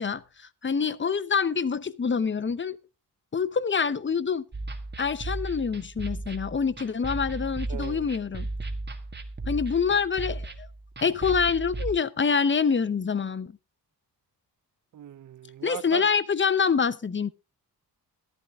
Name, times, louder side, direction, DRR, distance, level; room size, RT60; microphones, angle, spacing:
voice 1, 0.0-2.8 3.3-4.4 5.0-8.5 9.5-10.7 11.0-13.5 15.6-17.3, left 6 dB, 30° left, 0.8 m, -26 dB
sound 1, 4.5-11.9, right 2 dB, 25° right, 1.6 m, -35 dB
voice 2, 7.7-8.1 14.9-16.0, right 10 dB, 50° right, 0.6 m, -38 dB
14.0 x 11.5 x 3.5 m
cardioid pair, 100°, 39 cm